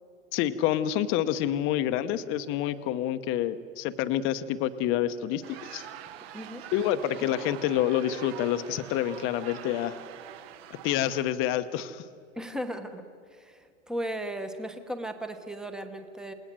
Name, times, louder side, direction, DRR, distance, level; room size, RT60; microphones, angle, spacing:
voice 1, 0.3-5.9 6.7-10.0 10.7-12.1, left 11 dB, 30° left, 11 dB, 1.0 m, -28 dB
sound 1, 5.4-11.2, right 11 dB, 45° right, 1.3 m, -44 dB
voice 2, 6.3-6.7 12.3-13.0 13.3-16.3, right 1 dB, ahead, 8 dB, 1.1 m, -36 dB
28.5 x 19.0 x 7.6 m, 2.4 s
hypercardioid pair, 140°, 40 cm